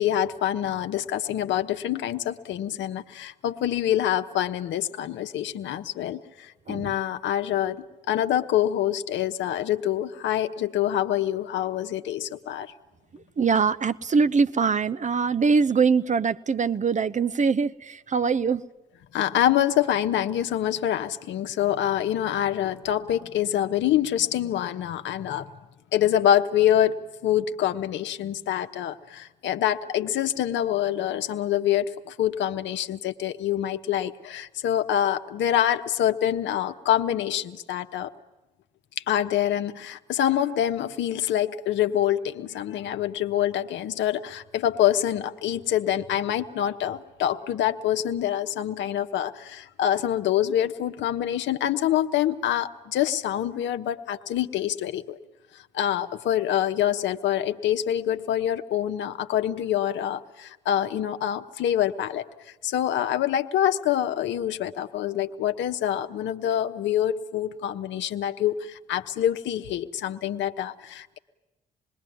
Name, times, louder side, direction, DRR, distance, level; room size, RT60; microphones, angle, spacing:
voice 1, 0.0-12.7 19.1-25.5 25.9-27.0 27.2-38.1 39.1-55.2 55.7-62.3 62.6-71.2, left 11 dB, 70° left, 1.0 m, -26 dB
voice 2, 13.4-18.6, right 5 dB, 40° right, 0.8 m, -23 dB
26.5 x 21.0 x 9.3 m
hypercardioid pair, 40°, 20 cm